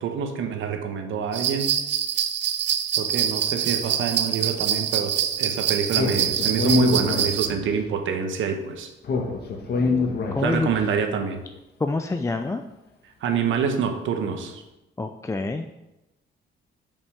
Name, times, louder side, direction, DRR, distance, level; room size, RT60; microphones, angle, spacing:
voice 1, 0.0-1.7 3.0-8.9 10.4-11.4 13.2-14.6, right 6 dB, 80° right, 5 dB, 1.1 m, -26 dB
sound 1, 1.3-7.5, right 9 dB, 65° right, 0.6 m, -25 dB
Speech, 5.9-7.8 9.0-10.8, left 4 dB, 55° left, 1.3 m, -25 dB
voice 2, 10.3-10.7 11.8-12.6 15.0-15.8, left 3 dB, 15° left, 6 dB, 0.4 m, -26 dB
5.5 x 5.4 x 6.3 m, 0.97 s
cardioid pair, 90°, 20 cm